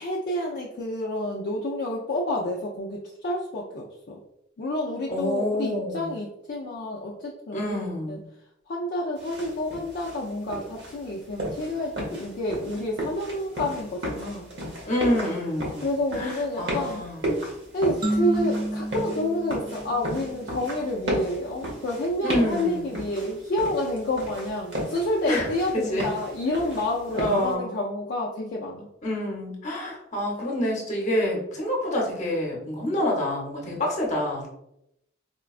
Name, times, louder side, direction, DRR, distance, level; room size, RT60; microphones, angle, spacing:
voice 1, 0.0-3.9 4.6-7.8 8.1-8.2 8.7-14.5 15.8-17.0 17.7-28.9, left 1 dB, 55° left, -2 dB, 0.4 m, -29 dB
voice 2, 5.1-6.1 7.5-8.2 14.9-15.8 16.1-17.3 22.2-22.9 25.3-26.1 27.1-27.7 29.0-34.5, left 1 dB, 40° left, -2 dB, 0.8 m, -27 dB
sound 1, 9.2-27.5, right 1 dB, 65° right, 0.9 m, -35 dB
sound 2, 18.0-20.7, right 1 dB, 20° right, 0.4 m, -30 dB
4.3 x 2.2 x 2.4 m, 0.81 s
head